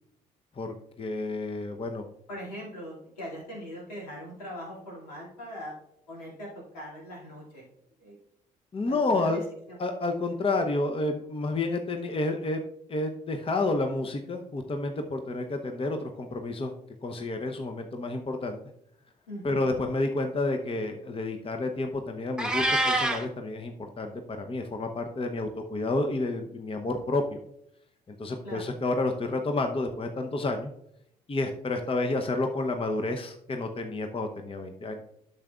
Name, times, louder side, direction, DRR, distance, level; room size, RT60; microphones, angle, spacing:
voice 1, 0.6-2.0 8.7-9.4 9.8-12.6 12.9-16.7 17.0-18.6 19.4-24.1 24.4-27.4 28.1-30.7 31.3-35.0, left 2 dB, 25° left, 4 dB, 0.8 m, -30 dB
voice 2, 2.3-5.7 6.1-7.6 8.0-8.2 8.8-9.4 9.7-9.8 19.3-19.7 28.4-28.7, equal, 80° left, -4 dB, 2.4 m, -41 dB
Meow, 22.4-23.2, right 1 dB, 5° right, 1.1 m, -25 dB
12.0 x 6.8 x 2.4 m, 0.75 s
figure-of-eight pair, 45°, 21 cm